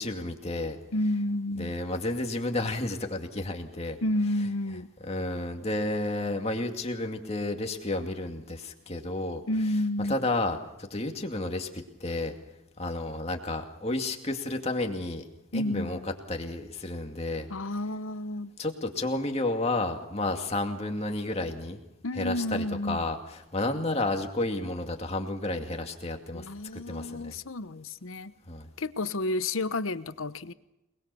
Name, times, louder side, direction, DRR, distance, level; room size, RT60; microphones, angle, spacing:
voice 1, 0.0-0.8 1.6-4.0 5.1-9.4 10.1-12.3 12.8-15.2 15.5-16.0 16.3-17.5 18.6-21.8 22.2-27.3 28.5-28.7, left 2 dB, 30° left, 4 dB, 2.3 m, -31 dB
voice 2, 0.9-1.8 4.0-4.9 9.5-10.2 15.5-16.1 17.5-18.5 22.0-23.1 26.3-28.3 28.8-30.5, left 1 dB, 70° left, 14 dB, 0.9 m, -30 dB
27.5 x 20.5 x 7.0 m, 0.91 s
head